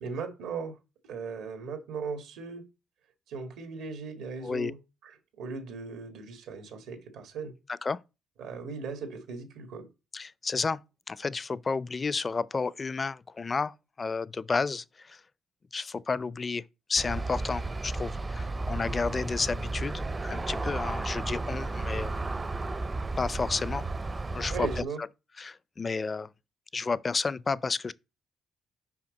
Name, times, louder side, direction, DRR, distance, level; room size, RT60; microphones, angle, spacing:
voice 1, 0.0-0.8 1.1-2.7 3.3-4.8 5.0-7.5 8.4-9.9 24.5-25.0, right 5 dB, 90° right, 1.6 m, -38 dB
voice 2, 10.1-10.8 11.1-15.2 15.7-16.6 16.9-22.1 23.2-23.9 24.3-24.8 25.4-26.3 26.7-27.9, left 4 dB, 30° left, 0.4 m, -31 dB
Aircraft, 17.0-24.8, right 2 dB, 25° right, 0.5 m, -33 dB
5.7 x 5.0 x 5.2 m
cardioid pair, 90°, 0 cm